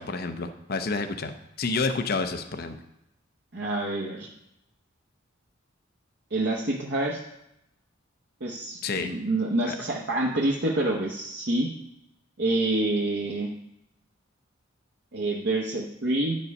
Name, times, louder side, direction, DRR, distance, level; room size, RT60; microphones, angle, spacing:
voice 1, 0.0-2.7 8.8-9.1 9.7-9.8, left 4 dB, 50° left, 7 dB, 0.6 m, -29 dB
voice 2, 3.5-4.3 6.3-7.2 8.4-11.7 12.4-13.5 15.1-16.4, right 2 dB, 60° right, -2 dB, 0.9 m, -27 dB
9.6 x 5.3 x 5.3 m, 0.82 s
head